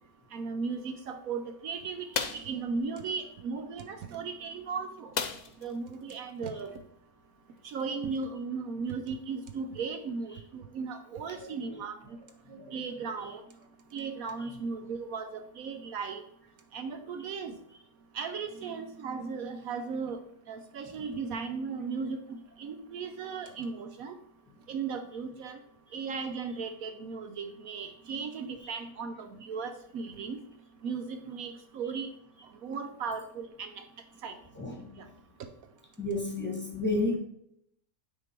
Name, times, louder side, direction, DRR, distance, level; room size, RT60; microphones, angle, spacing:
voice 1, 0.3-2.1 2.3-5.1 5.6-6.7 7.6-12.0 12.7-13.4 13.9-16.2 16.7-17.5 18.1-20.2 20.5-24.1 24.7-25.6 25.9-30.4 30.8-32.1 32.6-33.8 34.2-34.3, right 5 dB, 70° right, 7 dB, 1.0 m, -36 dB
sound 1, 2.1-2.5 5.1-5.7 6.1-6.2 6.6-6.8, left 6 dB, 80° left, 0.4 m, -33 dB
voice 2, 11.3-11.8 12.5-12.8 14.5-14.6 34.5-34.9 36.0-37.2, left 2 dB, 10° left, -1 dB, 1.3 m, -32 dB
9.5 x 3.8 x 4.5 m, 0.71 s
omnidirectional pair, 1.6 m